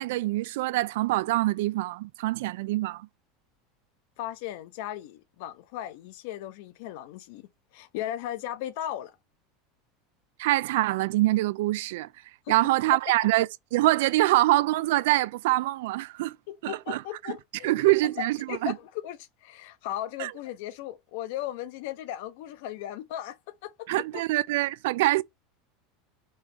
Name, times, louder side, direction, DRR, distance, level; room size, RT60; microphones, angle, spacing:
voice 1, 0.0-3.1 10.4-12.1 12.5-16.4 16.6-17.0 17.6-18.7 20.2-20.3 23.9-25.2, right 18 dB, 70° right, 0.3 m, -25 dB
voice 2, 4.2-7.5 7.7-9.2 12.5-12.6 16.5-24.2, left 12 dB, 60° left, 0.7 m, -37 dB
5.4 x 2.8 x 3.4 m
supercardioid pair, 180°, 0 cm